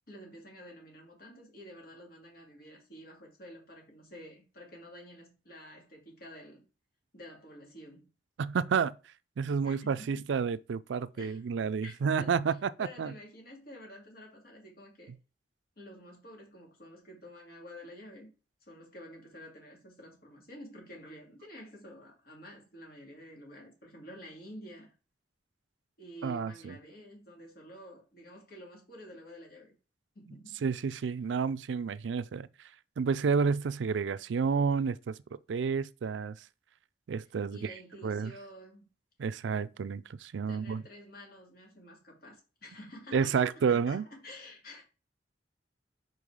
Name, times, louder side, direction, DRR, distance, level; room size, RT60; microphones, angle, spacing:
voice 1, 0.1-6.6 7.1-8.1 9.6-10.3 11.1-11.5 11.8-15.1 15.8-18.3 18.7-24.9 26.0-29.7 30.1-30.6 30.9-31.0 37.5-38.9 40.5-44.8, equal, 55° left, 2.4 m, -50 dB
voice 2, 8.4-8.9 9.4-13.1 26.2-26.8 30.6-32.5 33.0-35.2 35.5-36.4 37.1-37.7 38.0-38.3 39.2-40.8 43.1-44.1, right 5 dB, 80° right, 0.4 m, -30 dB
5.4 x 4.6 x 4.8 m
head